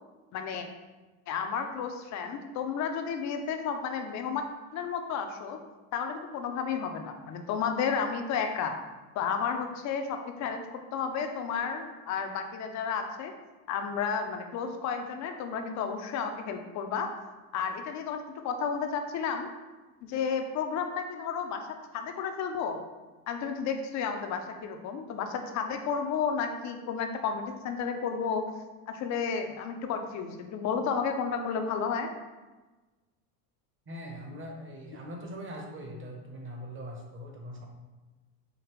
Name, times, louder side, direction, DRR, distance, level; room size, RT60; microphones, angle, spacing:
voice 1, 0.3-0.7 1.3-4.4 4.7-5.6 5.9-8.8 9.1-13.3 13.7-17.1 17.5-19.5 20.0-21.7 21.9-22.8 23.3-28.4 28.9-32.1, left 6 dB, 40° left, 6 dB, 0.5 m, -32 dB
voice 2, 33.9-37.7, equal, 25° right, 1 dB, 0.9 m, -41 dB
5.0 x 2.8 x 3.1 m, 1.2 s
hypercardioid pair, 95°, 48 cm